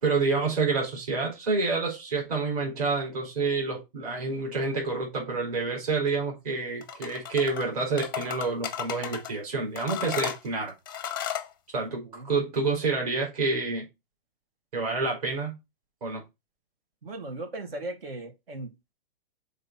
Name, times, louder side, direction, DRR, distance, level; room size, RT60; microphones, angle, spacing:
voice 1, 0.0-10.7 11.7-13.9 14.7-15.6 16.0-16.2, right 4 dB, 40° right, 4.3 m, -28 dB
sound 1, 6.8-7.7 8.0-9.3 9.8-11.5, left 9 dB, 25° left, 0.5 m, -34 dB
voice 2, 17.0-18.9, right 2 dB, 75° right, 2.8 m, -38 dB
6.5 x 4.1 x 5.7 m
hypercardioid pair, 180°, 29 cm